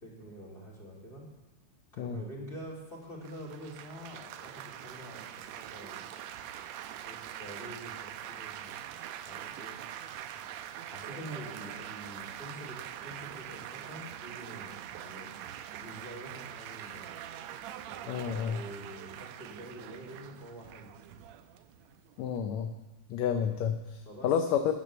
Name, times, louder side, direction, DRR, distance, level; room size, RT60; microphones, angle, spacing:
voice 1, 0.0-1.3 1.9-6.1 7.0-8.8 9.2-9.8 10.9-15.3 15.8-17.1 17.9-20.9 24.0-24.3, right 1 dB, 20° left, -2 dB, 2.7 m, -46 dB
Laughter / Applause / Chatter, 3.2-22.4, right 11 dB, 80° right, 1.8 m, -44 dB
voice 2, 18.1-18.6 22.2-22.7 23.1-24.7, left 8 dB, 75° left, 6 dB, 1.9 m, -30 dB
12.0 x 9.2 x 6.8 m, 1.1 s
omnidirectional pair, 3.4 m